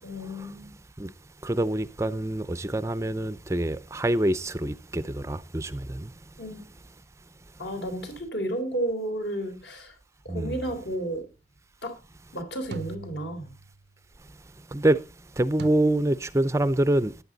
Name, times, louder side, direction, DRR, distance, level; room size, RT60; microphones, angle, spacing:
voice 1, 0.0-0.8 6.4-6.6 7.6-9.9 10.2-11.2 11.8-12.0 12.3-13.5, right 1 dB, 65° left, 3.9 m, -32 dB
voice 2, 1.4-6.2 10.3-10.6 14.7-17.2, right 1 dB, 15° right, 0.5 m, -26 dB
sound 1, 10.7-11.1 12.7-13.9 15.6-15.7, right 4 dB, 65° right, 0.5 m, -41 dB
14.0 x 11.0 x 4.0 m
head